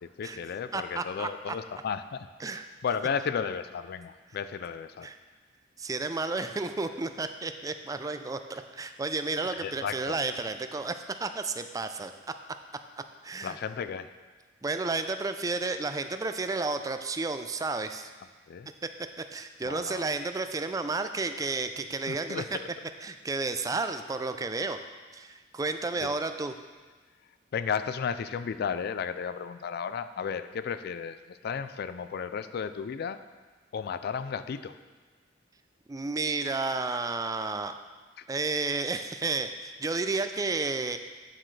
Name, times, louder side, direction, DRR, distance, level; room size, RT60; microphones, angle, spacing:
voice 1, 0.0-2.3 2.8-5.1 9.6-10.2 13.4-14.1 18.5-18.7 19.6-20.1 22.1-22.5 26.0-26.1 27.5-33.2 33.7-34.7, left 6 dB, 55° left, 12 dB, 0.3 m, -33 dB
voice 2, 0.7-1.6 2.4-2.7 5.0-5.2 5.8-12.1 13.2-13.6 14.6-18.1 19.2-22.6 23.0-24.8 25.1-26.5 35.9-37.7 38.3-41.0, right 3 dB, 20° right, 8 dB, 0.4 m, -32 dB
9.0 x 7.4 x 3.2 m, 1.4 s
head